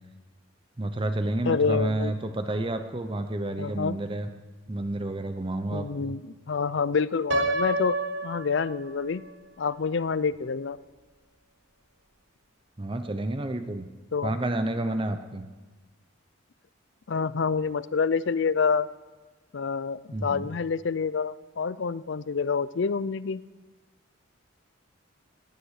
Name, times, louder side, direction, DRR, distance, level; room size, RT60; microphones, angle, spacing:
voice 1, 0.8-4.3 4.7-6.2 12.8-13.9 14.2-15.5 20.1-20.5, right 1 dB, 25° right, 8 dB, 0.7 m, -30 dB
voice 2, 1.5-2.1 3.6-4.0 5.7-8.0 8.2-9.2 9.6-10.8 14.1-14.4 17.1-18.9 19.5-23.4, left 5 dB, 55° left, 18 dB, 0.5 m, -27 dB
Piano, 7.3-9.3, right 2 dB, 55° right, 1.6 m, -29 dB
17.5 x 11.0 x 6.5 m, 1.3 s
head